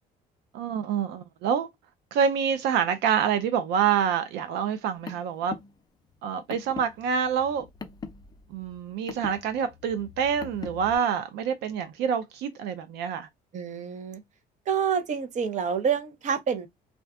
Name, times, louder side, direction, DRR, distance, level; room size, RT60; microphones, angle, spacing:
voice 1, 0.5-1.7 2.1-5.5 6.2-7.7 8.5-13.3, right 7 dB, 80° right, 0.5 m, -27 dB
Car, 4.7-10.9, left 5 dB, 25° left, 0.5 m, -42 dB
voice 2, 13.5-14.2 14.7-16.7, right 7 dB, 45° right, 0.7 m, -27 dB
2.4 x 2.2 x 3.5 m
cardioid pair, 110°, 17 cm